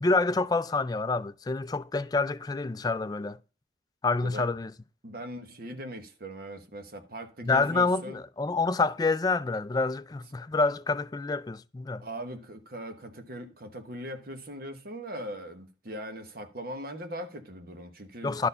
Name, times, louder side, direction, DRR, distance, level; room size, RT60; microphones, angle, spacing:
voice 1, 0.0-3.4 4.0-4.7 7.4-12.0 18.2-18.5, left 3 dB, 20° left, 0.3 m, -27 dB
voice 2, 5.0-8.2 12.0-18.4, right 1 dB, 55° right, 1.2 m, -40 dB
11.5 x 4.5 x 5.5 m
head